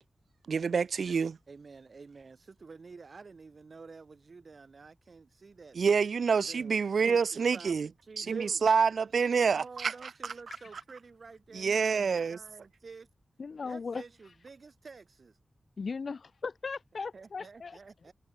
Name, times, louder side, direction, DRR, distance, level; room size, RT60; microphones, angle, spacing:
voice 1, 0.5-1.4 5.7-7.9 8.2-9.9 10.2-10.3 11.5-12.4, right 5 dB, 85° right, 0.6 m, -27 dB
voice 2, 1.5-5.8 6.4-6.8 7.0-8.7 9.6-13.1 13.7-15.4 17.1-18.1, right 4 dB, 60° right, 4.3 m, -50 dB
voice 3, 13.4-14.0 15.8-17.8, left 4 dB, 70° left, 1.3 m, -37 dB
wide cardioid pair, 70°, 0 cm